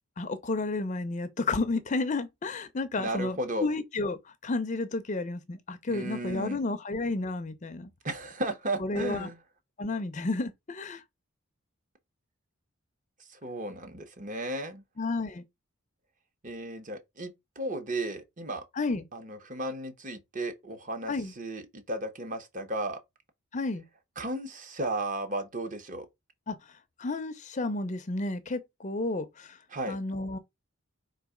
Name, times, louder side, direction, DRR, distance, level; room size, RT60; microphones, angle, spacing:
voice 1, 0.2-7.9 8.8-9.3 9.8-11.0 15.0-15.4 18.8-19.1 21.1-21.3 23.5-23.9 26.5-26.6 27.0-29.6 29.9-30.4, left 3 dB, 35° left, 0.5 m, -31 dB
voice 2, 3.0-3.7 5.9-6.6 8.0-9.4 13.3-14.8 16.4-18.6 19.1-23.0 24.2-26.1 29.7-30.0, right 1 dB, 35° right, 0.8 m, -34 dB
3.9 x 2.8 x 4.8 m
head